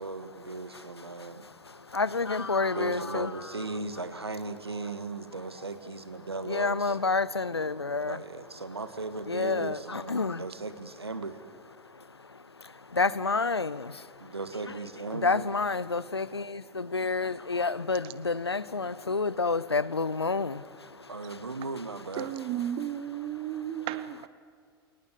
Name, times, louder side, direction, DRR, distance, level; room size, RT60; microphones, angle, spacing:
voice 1, 0.0-1.4 2.7-7.0 8.1-11.4 14.2-15.5 21.1-22.3, right 3 dB, 85° right, 1.7 m, -37 dB
voice 2, 1.9-3.3 6.5-8.2 9.3-10.4 13.0-13.8 15.2-20.6, left 4 dB, 85° left, 0.7 m, -28 dB
voice 3, 22.2-24.3, right 11 dB, 40° right, 1.4 m, -34 dB
28.0 x 19.5 x 8.3 m
figure-of-eight pair, 85°, 13 cm